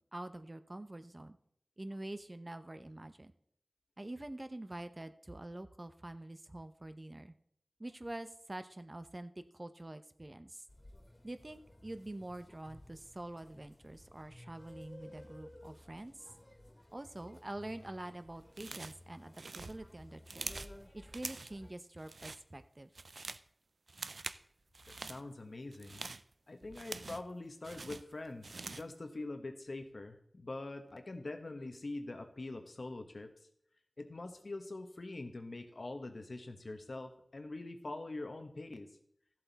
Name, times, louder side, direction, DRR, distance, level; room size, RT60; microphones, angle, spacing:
voice 1, 0.1-1.4 1.8-3.3 4.0-7.3 7.8-10.6 11.2-16.3 16.9-20.5 20.9-22.9, right 1 dB, 40° right, 10 dB, 0.7 m, -46 dB
sound 1, 10.7-21.7, left 1 dB, 35° left, 2.0 m, -56 dB
sound 2, 18.5-19.0 19.3-20.8 21.1-21.6 22.0-22.4 22.8-23.5 23.9-24.4 24.7-25.2 25.7-27.3 27.6-28.9, right 3 dB, 80° right, 0.4 m, -45 dB
voice 2, 24.9-26.0 26.5-33.3 34.0-38.9, left 2 dB, 70° left, 6 dB, 1.2 m, -44 dB
13.5 x 7.7 x 4.1 m, 0.68 s
wide cardioid pair, 45°, 0 cm